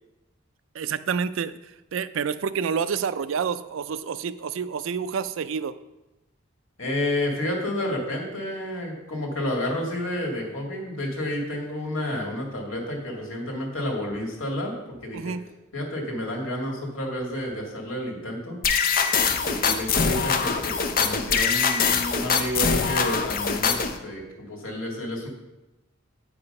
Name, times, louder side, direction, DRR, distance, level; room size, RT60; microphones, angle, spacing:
voice 1, 0.7-1.6 1.9-5.7 15.1-15.4, right 6 dB, 70° right, 14 dB, 0.4 m, -28 dB
voice 2, 6.8-15.4 15.7-18.6 19.3-25.3, left 1 dB, 80° left, -1 dB, 2.2 m, -30 dB
sound 1, 18.6-24.0, left 6 dB, 45° left, 0.6 m, -23 dB
8.5 x 4.8 x 5.3 m, 0.99 s
head